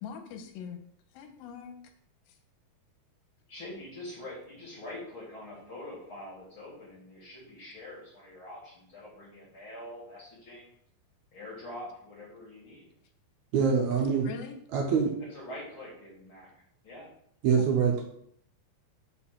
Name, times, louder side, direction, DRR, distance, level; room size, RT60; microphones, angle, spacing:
voice 1, 0.0-0.8 1.1-1.7 2.3-2.4 14.2-14.6 17.6-17.7, left 7 dB, 80° left, 6 dB, 2.4 m, -42 dB
voice 2, 3.5-10.7 11.3-12.9 15.3-17.1, left 1 dB, 40° left, -4 dB, 2.2 m, -44 dB
voice 3, 13.5-14.3 14.7-15.1 17.4-18.0, right 6 dB, 75° right, 1 dB, 1.7 m, -24 dB
5.4 x 4.3 x 5.8 m, 0.67 s
omnidirectional pair, 4.4 m